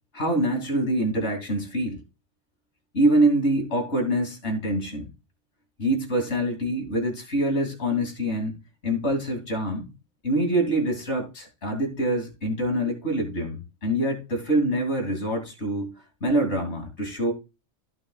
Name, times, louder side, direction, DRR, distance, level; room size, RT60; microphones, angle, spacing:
voice 1, 0.1-2.0 2.9-5.1 5.8-9.9 10.2-15.9 16.2-17.3, right 1 dB, 70° left, 3.0 m, -25 dB
15.0 x 5.9 x 2.3 m
omnidirectional pair, 1.2 m